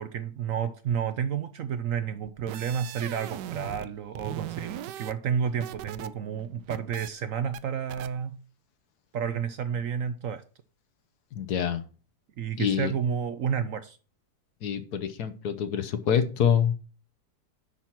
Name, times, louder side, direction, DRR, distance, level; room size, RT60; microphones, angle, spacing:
voice 1, 0.0-8.4 9.1-10.4 12.4-14.0, right 7 dB, 65° right, 0.9 m, -31 dB
sound 1, 2.3-3.9 4.1-6.1 6.4-7.1 7.5-7.6 7.9-8.1, right 12 dB, 85° right, 1.2 m, -39 dB
voice 2, 11.3-11.8 12.6-12.9 14.6-16.7, left 8 dB, 70° left, 1.4 m, -26 dB
10.0 x 4.5 x 5.9 m
omnidirectional pair, 1.8 m